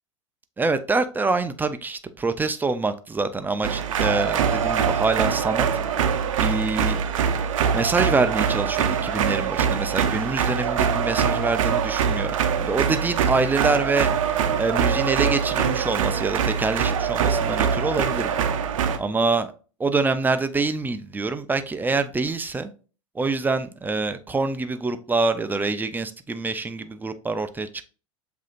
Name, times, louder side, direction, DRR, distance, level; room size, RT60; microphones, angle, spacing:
voice 1, 0.6-5.7 6.4-7.0 7.7-14.1 14.6-18.4 19.0-19.5 19.8-22.7 23.1-27.9, right 3 dB, 10° right, 0.5 m, -25 dB
sound 1, 3.6-19.0, right 7 dB, 80° right, 0.7 m, -23 dB
7.3 x 2.8 x 2.5 m
hypercardioid pair, 95°, 17 cm